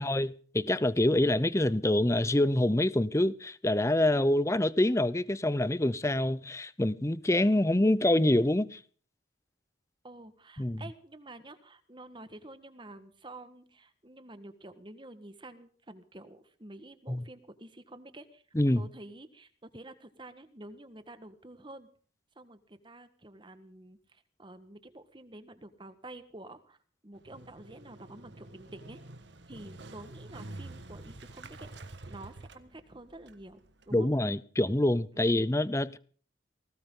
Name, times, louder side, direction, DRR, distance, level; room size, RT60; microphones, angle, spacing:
voice 1, 0.0-8.8 10.6-10.8 17.1-17.2 18.5-18.9 33.9-36.0, left 1 dB, 15° left, 0.7 m, -26 dB
voice 2, 10.0-18.4 18.7-21.9 22.3-26.8 27.0-29.0 29.5-31.7 32.1-33.6 33.9-34.1 35.2-35.4, right 1 dB, 25° right, 1.5 m, -49 dB
Motorcycle, 27.2-33.9, right 2 dB, 65° right, 1.6 m, -48 dB
20.5 x 18.0 x 3.8 m
head